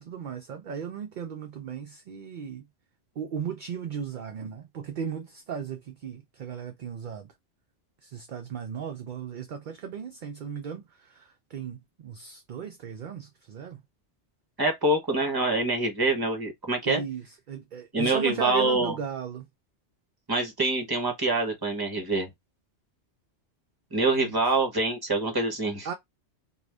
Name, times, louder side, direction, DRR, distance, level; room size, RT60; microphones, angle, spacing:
voice 1, 0.0-2.7 3.2-7.3 8.0-13.8 16.9-19.5 24.2-24.3 25.8-25.9, right 7 dB, 60° right, 0.5 m, -36 dB
voice 2, 14.6-17.0 17.9-19.0 20.3-22.3 23.9-25.9, right 2 dB, 20° right, 0.9 m, -25 dB
2.5 x 2.3 x 3.2 m
omnidirectional pair, 1.2 m